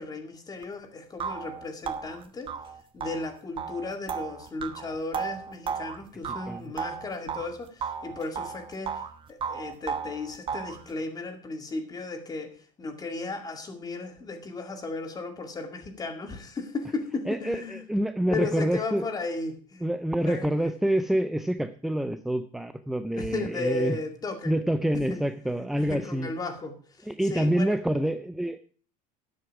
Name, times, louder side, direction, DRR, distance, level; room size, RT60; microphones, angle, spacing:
voice 1, 0.0-2.5 2.9-9.0 9.3-17.8 18.3-19.9 20.2-20.7 23.1-24.6 25.1-25.2 25.8-27.8, left 3 dB, 20° left, 6 dB, 2.2 m, -35 dB
sound 1, 0.6-0.7 1.2-7.5 7.8-9.1 9.4-10.8, right 6 dB, 30° right, 1.1 m, -34 dB
voice 2, 17.3-19.1 19.8-24.0 24.5-26.3 27.1-28.6, right 1 dB, ahead, 11 dB, 0.5 m, -27 dB
12.5 x 8.0 x 4.7 m, 0.43 s
cardioid pair, 140°, 18 cm